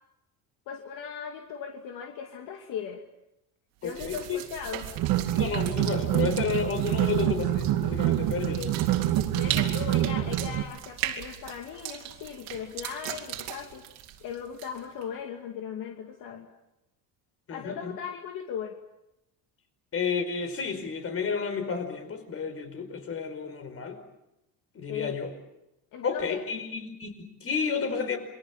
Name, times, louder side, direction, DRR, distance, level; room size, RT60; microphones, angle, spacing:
voice 1, 0.7-3.0 3.8-4.9 8.4-8.9 9.3-13.8 14.2-16.5 17.5-18.8 24.9-25.1 25.9-26.4, left 7 dB, 60° left, 3 dB, 2.7 m, -38 dB
voice 2, 3.8-4.4 5.3-8.7 17.5-17.9 19.9-24.0 24.7-25.3 26.0-28.2, left 5 dB, 35° left, 8 dB, 5.1 m, -31 dB
sound 1, 3.8-15.0, right 12 dB, 85° right, 3.5 m, -38 dB
sound 2, 5.0-10.6, right 13 dB, 60° right, 1.9 m, -26 dB
28.0 x 23.0 x 7.4 m, 0.88 s
cardioid pair, 120°, 37 cm